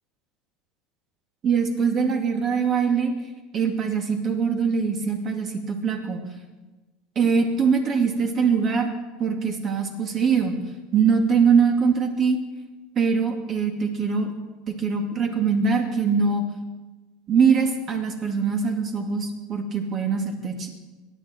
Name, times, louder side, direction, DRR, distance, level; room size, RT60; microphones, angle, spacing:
voice 1, 1.4-3.1 3.5-6.2 7.2-8.9 9.2-10.6 10.9-12.4 13.0-14.3 14.7-16.4 17.3-20.7, right 5 dB, 30° right, 3 dB, 2.4 m, -22 dB
24.5 x 10.5 x 4.5 m, 1.2 s
supercardioid pair, 150°, 0 cm